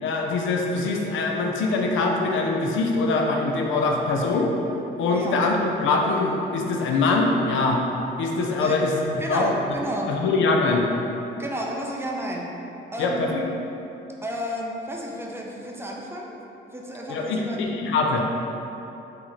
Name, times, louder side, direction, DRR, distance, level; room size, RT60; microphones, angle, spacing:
voice 1, 0.0-4.5 5.0-7.8 8.2-9.5 10.1-10.9 13.0-13.4 17.1-18.3, left 3 dB, 80° left, 1 dB, 0.5 m, -23 dB
voice 2, 9.2-10.1 11.4-12.5 12.9-13.2 14.2-16.3 16.7-17.6, equal, 10° right, -2 dB, 0.4 m, -31 dB
3.8 x 2.8 x 3.0 m, 2.9 s
cardioid pair, 90°, 20 cm